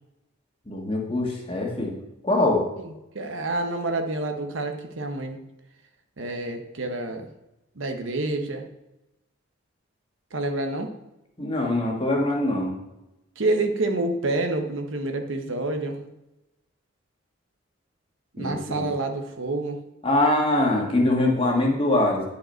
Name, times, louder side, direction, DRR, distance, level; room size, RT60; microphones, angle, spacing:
voice 1, 0.7-1.9 2.2-2.6 11.4-12.7 18.4-18.9 20.0-22.2, left 1 dB, 25° left, 0 dB, 1.6 m, -23 dB
voice 2, 2.8-5.4 6.2-7.3 7.8-8.7 10.3-10.9 13.4-16.0 18.3-19.8, right 2 dB, 70° right, 6 dB, 1.0 m, -28 dB
10.0 x 5.4 x 4.4 m, 0.93 s
head